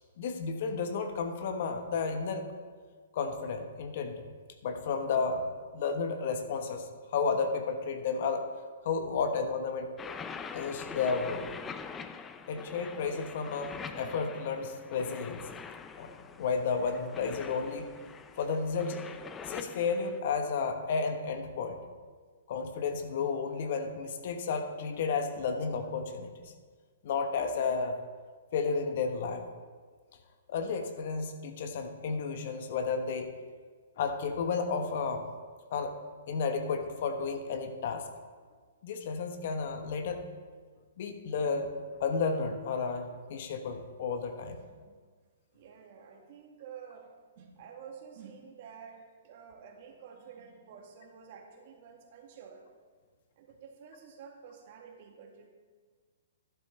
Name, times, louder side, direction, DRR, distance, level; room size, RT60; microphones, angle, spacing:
voice 1, 0.2-2.5 3.1-4.2 4.6-5.5 5.7-6.8 7.1-8.4 8.8-9.9 10.5-11.5 12.5-15.4 16.0-17.9 18.4-19.0 19.5-21.8 22.5-26.3 27.0-27.9 28.5-29.4 30.5-33.3 34.0-35.3 35.7-36.0 36.3-38.1 38.8-40.2 41.0-41.7 42.0-44.6, left 5 dB, 55° left, 6 dB, 1.2 m, -32 dB
sound 1, 10.0-20.2, left 6 dB, 15° left, 0.5 m, -44 dB
voice 2, 44.5-45.0 45.5-47.1 47.4-52.6 53.4-55.5, right 7 dB, 50° right, 2 dB, 2.0 m, -50 dB
12.0 x 11.0 x 3.4 m, 1.5 s
hypercardioid pair, 130°, 0 cm